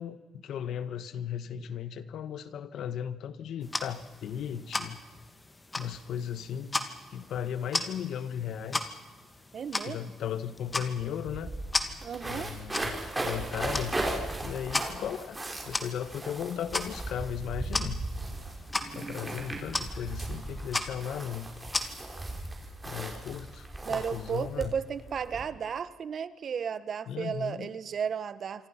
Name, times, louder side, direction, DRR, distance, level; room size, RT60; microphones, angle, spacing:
voice 1, 0.0-5.0 5.8-9.0 9.8-11.5 12.2-14.0 14.4-15.4 15.6-18.1 18.9-21.5 22.8-24.8 27.1-27.7, left 9 dB, 75° left, 13 dB, 1.3 m, -36 dB
sound 1, 3.6-22.4, left 2 dB, 20° left, 2.2 m, -37 dB
voice 2, 9.5-10.0 12.0-12.5 23.8-28.7, right 7 dB, 55° right, 14 dB, 1.2 m, -34 dB
sound 2, 10.7-10.8 11.0-25.4, right 2 dB, 15° right, 5.3 m, -37 dB
27.0 x 23.5 x 5.8 m, 1.3 s
cardioid pair, 90°, 0 cm